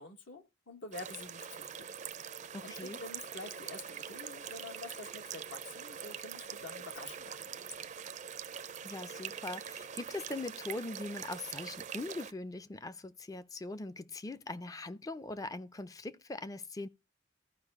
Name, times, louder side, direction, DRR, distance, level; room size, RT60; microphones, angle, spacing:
voice 1, 0.0-1.7 2.6-7.6, left 3 dB, 75° left, 1.4 m, -48 dB
sound 1, 0.9-12.3, right 8 dB, 40° right, 0.4 m, -44 dB
voice 2, 2.5-3.0 8.8-16.9, left 2 dB, 20° left, 0.4 m, -41 dB
14.5 x 4.9 x 3.6 m
head